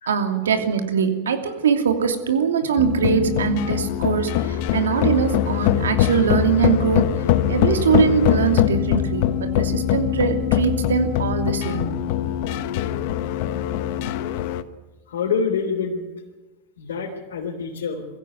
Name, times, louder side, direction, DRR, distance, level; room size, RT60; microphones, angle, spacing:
voice 1, 0.1-7.0 7.5-12.0, right 7 dB, 90° right, 5 dB, 2.8 m, -22 dB
sound 1, 2.8-14.6, left 11 dB, 65° left, 1.2 m, -22 dB
voice 2, 15.1-16.1 16.8-18.1, left 5 dB, 85° left, -2 dB, 3.7 m, -26 dB
23.0 x 15.5 x 9.5 m, 1.2 s
hypercardioid pair, 100°, 0 cm